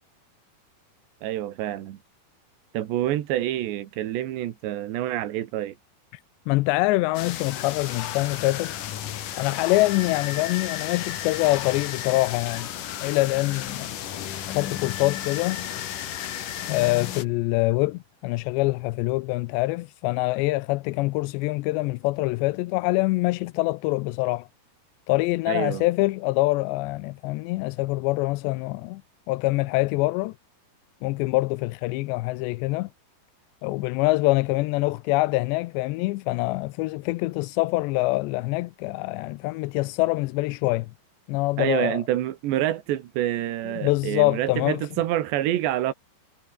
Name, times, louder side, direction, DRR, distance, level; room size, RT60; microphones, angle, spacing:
voice 1, 1.2-2.0 2.7-5.8 25.5-25.9 41.6-45.9, right 13 dB, 85° right, 3.8 m, -27 dB
voice 2, 6.5-8.7 9.2-12.7 13.0-13.9 14.5-15.7 16.7-24.5 25.1-29.0 29.3-30.3 31.0-32.9 33.6-40.9 41.3-42.0 43.8-44.9, left 21 dB, 90° left, 2.9 m, -25 dB
sound 1, 7.1-17.2, left 11 dB, 60° left, 2.8 m, -33 dB
omnidirectional pair, 5.0 m